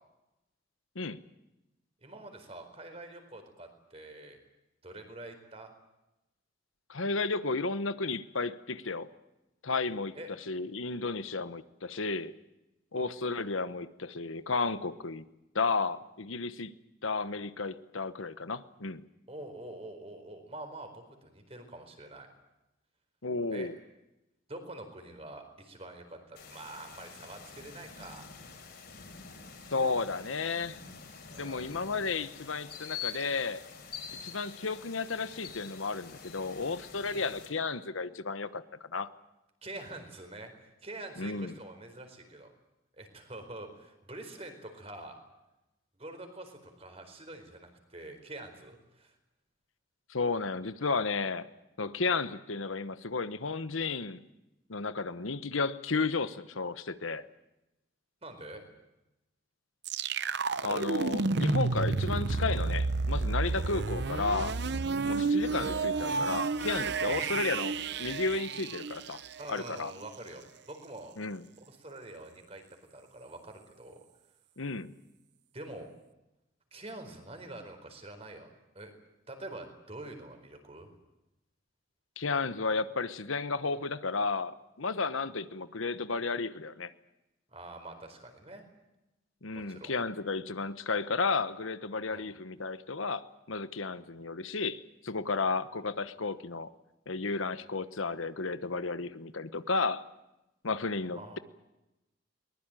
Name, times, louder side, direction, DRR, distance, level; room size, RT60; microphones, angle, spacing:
voice 1, 2.0-4.4 4.8-5.7 10.1-10.3 12.9-13.1 19.3-22.3 23.5-23.7 24.5-28.6 30.1-30.3 31.3-31.7 37.1-37.3 39.6-42.5 43.0-45.2 46.0-49.1 58.2-58.6 66.5-66.6 67.0-67.7 69.4-71.1 71.6-72.6 72.9-74.0 75.5-75.9 76.7-78.5 78.7-78.9 79.3-80.9 87.5-88.6 89.5-89.9 92.1-92.3 101.2-101.4, right 2 dB, 30° right, 6 dB, 4.4 m, -46 dB
voice 2, 6.9-9.1 9.6-10.2 10.5-12.3 12.9-15.2 15.5-16.7 17.0-19.0 23.2-23.7 29.7-30.8 31.4-33.6 34.2-39.1 41.2-41.5 50.1-51.5 51.8-54.2 54.7-57.2 60.6-64.6 65.0-69.2 69.5-69.9 71.2-71.5 74.6-74.9 82.2-86.9 89.4-96.7 97.1-100.0 100.6-101.4, left 4 dB, 80° left, 13 dB, 1.1 m, -33 dB
sound 1, 26.4-37.5, left 6 dB, 55° left, 5.1 m, -46 dB
sound 2, 59.9-69.7, right 3 dB, 55° right, 0.8 m, -31 dB
22.0 x 20.5 x 9.1 m, 0.94 s
head